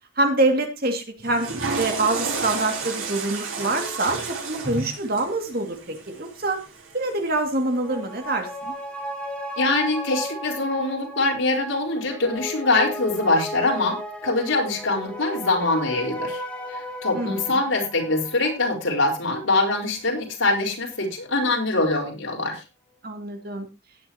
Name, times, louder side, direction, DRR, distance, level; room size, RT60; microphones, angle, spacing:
voice 1, 0.2-6.6 6.9-8.5 17.1-17.6 23.0-23.7, right 2 dB, 45° right, 5 dB, 2.4 m, -25 dB
Water / Toilet flush, 1.2-7.4, right 4 dB, 90° right, 3.8 m, -32 dB
sound 1, 7.6-20.4 20.8-20.9, left 1 dB, 5° left, 2.0 m, -35 dB
voice 2, 9.6-16.4 16.7-22.6, left 2 dB, 75° left, 0 dB, 4.8 m, -23 dB
16.5 x 10.0 x 3.0 m, 0.26 s
head